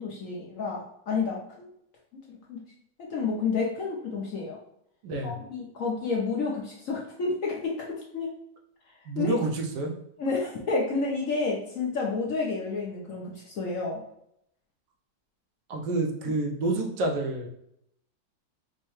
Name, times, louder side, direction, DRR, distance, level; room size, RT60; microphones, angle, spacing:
voice 1, 0.0-1.7 2.1-2.2 2.5-2.6 3.1-4.6 5.2-8.3 9.1-9.3 10.2-14.0 16.3-16.4, left 4 dB, 65° left, -3 dB, 0.9 m, -30 dB
voice 2, 5.0-5.3 9.1-9.9 15.7-17.5, right 2 dB, 80° right, 1 dB, 1.3 m, -28 dB
4.6 x 2.1 x 3.0 m, 0.75 s
omnidirectional pair, 1.9 m